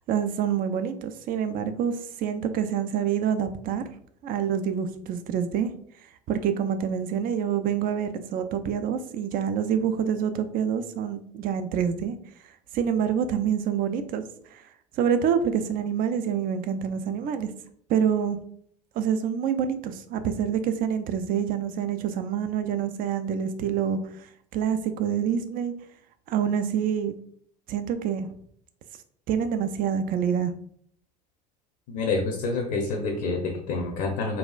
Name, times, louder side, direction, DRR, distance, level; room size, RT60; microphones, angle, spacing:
voice 1, 0.1-1.9 2.2-3.8 4.2-5.7 6.3-12.2 12.7-14.2 14.5-14.6 15.0-17.5 17.9-18.4 19.0-24.0 24.5-25.7 26.3-27.2 27.7-28.3 29.3-30.5, right 8 dB, 45° right, 10 dB, 0.4 m, -26 dB
voice 2, 31.9-34.4, left 3 dB, 60° left, 1 dB, 0.7 m, -28 dB
4.1 x 2.4 x 2.3 m, 0.63 s
hypercardioid pair, 70°, 21 cm